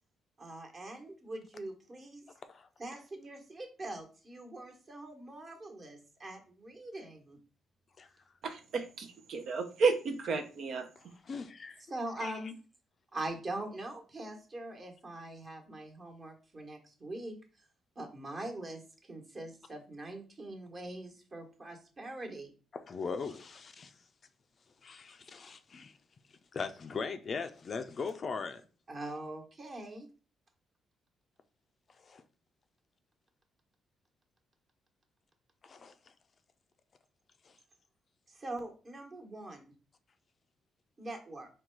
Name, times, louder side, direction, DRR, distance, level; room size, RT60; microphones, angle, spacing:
voice 1, 0.4-2.2 2.8-7.4 11.9-12.5 13.1-17.3 18.0-22.5 28.9-30.1 38.3-39.7 41.0-41.5, right 2 dB, 35° right, 1.2 m, -43 dB
voice 2, 8.4-10.9, right 4 dB, 65° right, 0.6 m, -32 dB
voice 3, 11.0-11.8 12.2-12.4 22.7-23.9 24.8-25.9 26.5-28.6 32.0-32.2 35.6-35.9 37.4-37.5, left 5 dB, 45° left, 0.4 m, -40 dB
3.8 x 2.3 x 4.5 m
cardioid pair, 90°, 0 cm